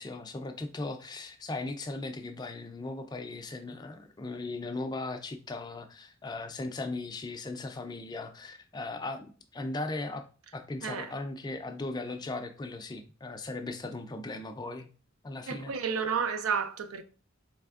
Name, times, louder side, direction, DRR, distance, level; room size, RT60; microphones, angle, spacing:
voice 1, 0.0-10.2 10.5-14.9 15.2-15.7, left 2 dB, 20° left, 0.3 m, -38 dB
voice 2, 10.8-11.1 15.5-17.0, right 6 dB, 80° right, 0.5 m, -31 dB
4.2 x 3.3 x 2.4 m
head